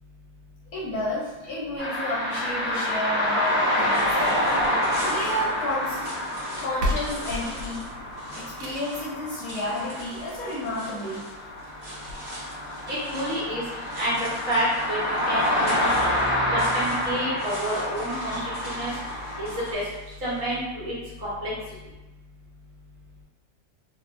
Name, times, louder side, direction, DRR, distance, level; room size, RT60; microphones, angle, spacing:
voice 1, 0.7-4.5 5.0-6.1 6.6-7.8 8.3-11.2, left 1 dB, 65° left, -6 dB, 1.0 m, -31 dB
sound 1, 1.8-19.7, left 1 dB, 10° right, 0.8 m, -28 dB
sound 2, 3.2-20.4, right 1 dB, 30° right, 1.1 m, -43 dB
sound 3, 4.4-5.6 6.4-6.5 6.8-9.1 10.4-10.5 11.0-11.1 11.4-11.5 12.0-12.1, left 1 dB, 75° right, 1.1 m, -33 dB
voice 2, 12.9-13.6 14.0-14.2 14.5-15.0 15.3-15.9 16.5-18.9 19.4-19.8 20.2-20.9 21.2-21.5, right 1 dB, 55° right, -8 dB, 1.2 m, -29 dB
3.2 x 2.7 x 2.5 m, 1.1 s
omnidirectional pair, 1.9 m